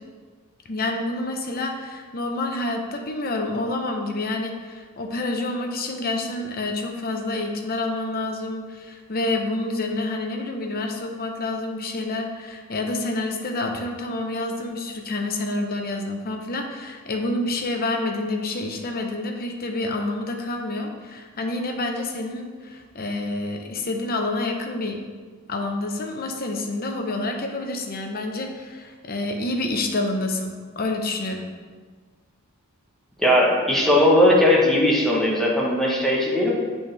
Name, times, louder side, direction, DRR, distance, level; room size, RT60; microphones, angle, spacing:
voice 1, 0.7-25.0 25.5-31.5, left 2 dB, 45° left, 3 dB, 0.7 m, -28 dB
voice 2, 33.2-36.5, left 1 dB, ahead, -4 dB, 1.1 m, -18 dB
8.5 x 4.2 x 3.4 m, 1.5 s
head